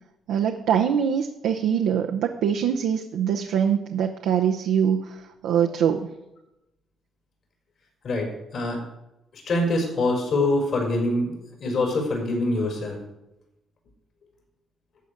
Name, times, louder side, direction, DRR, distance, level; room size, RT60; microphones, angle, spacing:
voice 1, 0.3-6.1, right 8 dB, 85° right, 3 dB, 0.8 m, -23 dB
voice 2, 8.0-8.8 9.3-11.3 11.6-13.0, left 2 dB, 60° left, 1 dB, 5.0 m, -24 dB
12.5 x 5.1 x 8.4 m, 0.90 s
cardioid pair, 90°, 0 cm